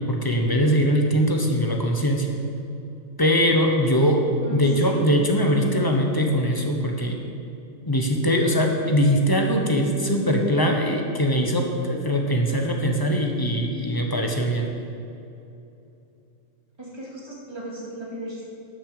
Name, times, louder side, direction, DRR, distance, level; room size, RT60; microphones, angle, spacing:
voice 1, 0.1-2.3 3.2-4.2 4.5-7.2 7.8-14.7, equal, 20° left, 2 dB, 0.8 m, -21 dB
voice 2, 4.4-4.9 7.1-7.2 16.8-18.4, equal, 20° right, -5 dB, 2.3 m, -36 dB
12.0 x 6.9 x 5.0 m, 2.8 s
omnidirectional pair, 1.5 m